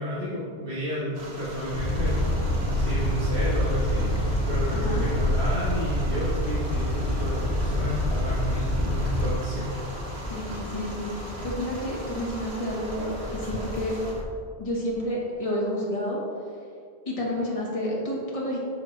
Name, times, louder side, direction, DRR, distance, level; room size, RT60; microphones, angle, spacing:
voice 1, 0.0-9.7, right 1 dB, 60° right, -8 dB, 1.5 m, -31 dB
sound 1, 1.1-14.1, right 1 dB, 80° right, 1.4 m, -39 dB
sound 2, 1.7-9.3, left 1 dB, 85° left, 1.2 m, -26 dB
sound 3, 2.1-14.2, left 1 dB, 10° left, 0.5 m, -39 dB
voice 2, 4.7-5.0 10.3-13.0 13.3-14.0 14.6-16.2 17.0-18.6, left 1 dB, 35° left, -4 dB, 1.4 m, -30 dB
8.6 x 5.9 x 3.2 m, 2.3 s
omnidirectional pair, 1.1 m